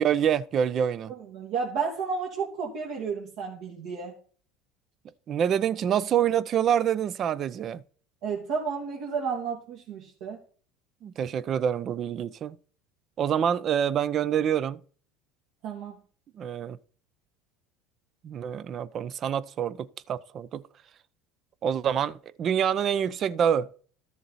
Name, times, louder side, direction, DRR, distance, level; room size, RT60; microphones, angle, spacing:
voice 1, 0.0-1.1 5.3-7.8 11.0-12.6 13.2-14.8 16.4-16.8 18.2-20.6 21.6-23.7, right 9 dB, 40° right, 0.7 m, -26 dB
voice 2, 1.1-4.1 8.2-10.4 15.6-16.0, right 5 dB, 70° right, 2.8 m, -32 dB
13.5 x 7.2 x 4.2 m
supercardioid pair, 120°, 0 cm